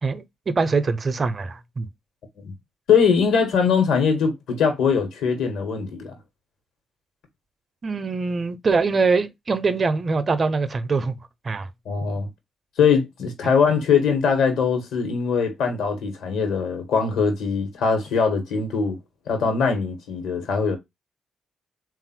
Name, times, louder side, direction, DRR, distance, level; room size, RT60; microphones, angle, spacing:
voice 1, 0.0-1.9 7.8-11.1 11.4-11.7, right 4 dB, 45° right, 0.6 m, -23 dB
voice 2, 2.9-6.1 11.8-12.3 12.8-19.0 19.3-20.8, left 6 dB, 70° left, 1.2 m, -21 dB
3.7 x 2.4 x 4.3 m
hypercardioid pair, 40°, 0 cm